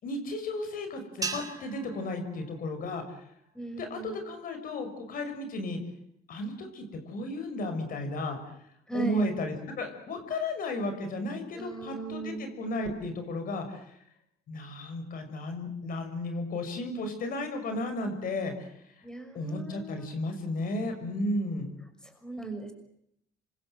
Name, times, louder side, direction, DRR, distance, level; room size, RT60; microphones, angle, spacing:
voice 1, 0.0-3.2 3.8-5.8 6.3-8.4 8.9-13.9 14.5-18.7 19.3-21.7, left 2 dB, 55° left, 7 dB, 6.2 m, -34 dB
sound 1, 1.2-3.7, right 4 dB, 20° right, 4.1 m, -40 dB
voice 2, 3.5-4.1 8.9-9.2 11.5-12.5 19.0-20.1 22.0-22.7, right 3 dB, 5° left, 6 dB, 6.0 m, -37 dB
27.0 x 25.0 x 8.0 m, 0.74 s
cardioid pair, 110°, 17 cm